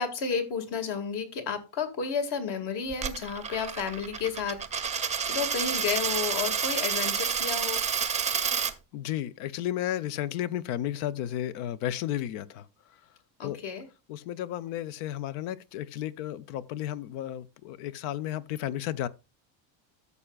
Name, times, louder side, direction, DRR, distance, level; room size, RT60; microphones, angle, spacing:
voice 1, 0.0-7.9 13.4-13.9, left 6 dB, 55° left, 2.2 m, -32 dB
Coin (dropping), 2.9-8.7, right 7 dB, 15° right, 0.5 m, -29 dB
voice 2, 8.9-12.7 13.4-13.6 14.1-19.1, left 12 dB, 75° left, 0.8 m, -33 dB
13.5 x 6.9 x 2.4 m
cardioid pair, 145°, 50 cm